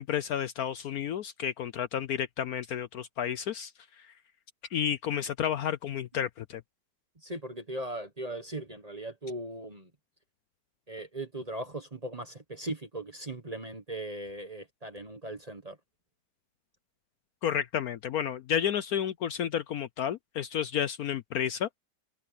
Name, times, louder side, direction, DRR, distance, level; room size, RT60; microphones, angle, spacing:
voice 1, 0.0-3.7 4.0-4.1 4.7-6.6 17.4-21.7, left 9 dB, 65° left, 1.0 m, -31 dB
voice 2, 7.2-9.9 10.9-15.8, right 1 dB, 25° right, 1.1 m, -38 dB
omnidirectional pair, 1.9 m